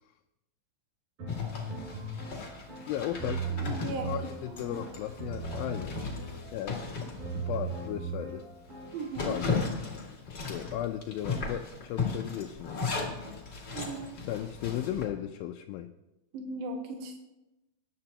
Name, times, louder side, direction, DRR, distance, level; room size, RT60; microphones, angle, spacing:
sound 1, 1.2-9.1, right 4 dB, 40° right, 5.8 m, -38 dB
Zipper (clothing), 1.3-7.9 8.3-8.4 8.8-15.1, left 4 dB, 35° left, 2.5 m, -36 dB
voice 1, 2.9-5.9 6.5-6.9 7.3-8.4 9.2-9.7 10.3-12.9 14.2-15.9, left 11 dB, 90° left, 3 dB, 2.4 m, -36 dB
voice 2, 3.7-4.2 4.5-4.8 8.9-9.4 13.7-14.1 16.3-17.2, right 3 dB, 85° right, 3 dB, 2.9 m, -37 dB
21.5 x 10.5 x 2.9 m, 0.97 s
omnidirectional pair, 4.1 m